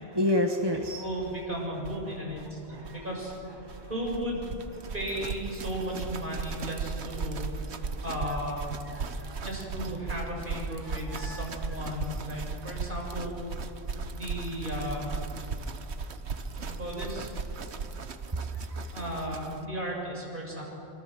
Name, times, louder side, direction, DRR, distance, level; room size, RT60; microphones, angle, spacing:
voice 1, 0.1-1.0 2.7-2.9 3.8-3.9 9.0-9.4 11.1-11.4, left 1 dB, 20° right, 3 dB, 1.3 m, -29 dB
voice 2, 1.0-3.3 3.9-4.4 4.9-7.5 8.0-8.7 9.4-13.4 14.1-15.1 16.8-17.3 18.9-20.6, equal, 45° right, -2 dB, 7.1 m, -35 dB
sound 1, 1.2-1.3 1.5-1.6 1.8-19.7, right 4 dB, 70° right, 1.4 m, -37 dB
26.0 x 25.5 x 7.8 m, 2.8 s
omnidirectional pair, 1.2 m